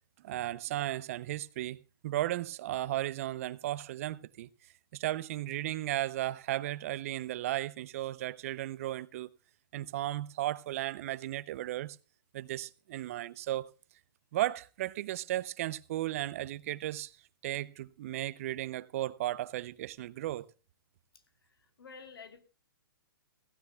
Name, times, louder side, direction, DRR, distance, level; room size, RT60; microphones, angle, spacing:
voice 1, 0.2-4.5 4.9-9.3 9.7-12.0 12.3-13.7 14.3-17.1 17.4-20.5, right 14 dB, 40° right, 0.5 m, -35 dB
voice 2, 21.1-22.4, left 5 dB, 80° left, 2.7 m, -51 dB
16.5 x 15.5 x 2.2 m
hypercardioid pair, 155°, 12 cm